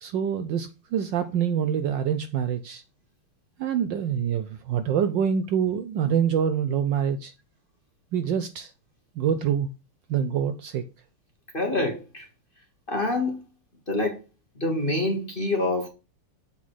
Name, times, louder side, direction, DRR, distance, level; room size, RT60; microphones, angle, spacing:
voice 1, 0.0-2.8 3.6-7.3 8.1-8.7 9.2-9.7 10.1-10.8, right 8 dB, 75° right, 1.1 m, -25 dB
voice 2, 11.5-12.3 12.9-13.4 13.9-14.2 14.6-15.9, left 2 dB, 30° left, 1.1 m, -26 dB
7.3 x 3.9 x 6.2 m
omnidirectional pair, 2.4 m